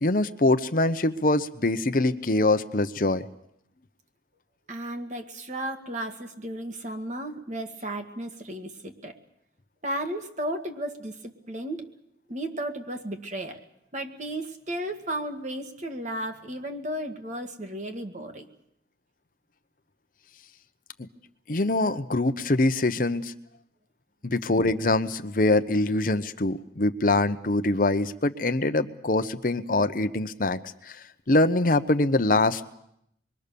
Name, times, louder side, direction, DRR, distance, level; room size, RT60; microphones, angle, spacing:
voice 1, 0.0-3.2 21.5-23.3 24.2-30.6 30.9-31.0 31.3-32.7, left 2 dB, 50° left, 10 dB, 0.9 m, -24 dB
voice 2, 4.7-9.2 9.8-11.9 12.3-13.7 13.9-18.5, right 1 dB, 40° right, 5 dB, 2.0 m, -34 dB
26.5 x 22.5 x 6.9 m, 0.75 s
head